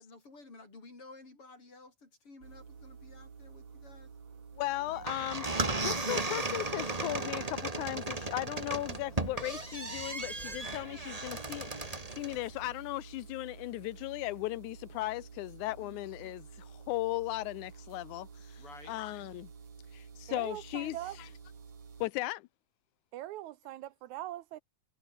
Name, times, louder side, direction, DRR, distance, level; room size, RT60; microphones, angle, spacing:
voice 1, 0.0-4.1 4.7-5.0 15.7-16.0 18.6-19.0, left 3 dB, 45° left, 7.7 m, -53 dB
sound 1, 2.4-22.1, right 5 dB, 60° right, 4.9 m, -51 dB
voice 2, 4.6-5.5 5.8-19.5 19.9-21.3 22.0-22.5, left 18 dB, 85° left, 2.0 m, -37 dB
sound 2, 4.9-12.5, right 2 dB, 15° right, 1.5 m, -36 dB
voice 3, 20.3-21.2 23.1-24.6, right 14 dB, 75° right, 2.1 m, -42 dB
omnidirectional pair, 3.5 m